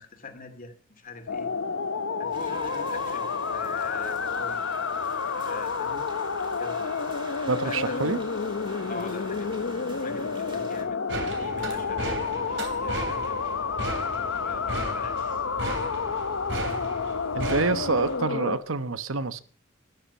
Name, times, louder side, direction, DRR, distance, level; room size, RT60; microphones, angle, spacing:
voice 1, 0.0-1.5 2.2-4.7 5.3-6.1 6.4-6.9 7.6-8.1 8.9-9.6 10.0-13.4 14.4-15.4 17.5-17.7, left 3 dB, 45° left, 2.5 m, -42 dB
sound 1, 1.3-18.6, left 5 dB, 75° left, 0.8 m, -30 dB
sound 2, 2.3-10.8, right 1 dB, 25° right, 3.3 m, -45 dB
voice 2, 7.5-8.2 17.3-19.4, right 3 dB, 90° right, 1.0 m, -27 dB
sound 3, 11.1-18.2, right 2 dB, 65° right, 3.2 m, -35 dB
13.5 x 11.5 x 5.6 m
head